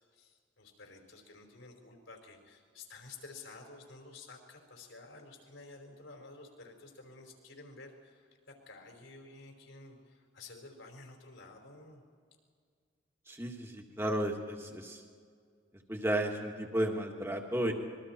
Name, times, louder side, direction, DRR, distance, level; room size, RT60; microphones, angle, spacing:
voice 1, 0.1-12.0, left 3 dB, 75° left, 2 dB, 4.6 m, -52 dB
voice 2, 13.3-15.0 15.9-17.7, right 1 dB, 10° right, 2 dB, 2.0 m, -33 dB
26.0 x 22.5 x 4.5 m, 2.1 s
head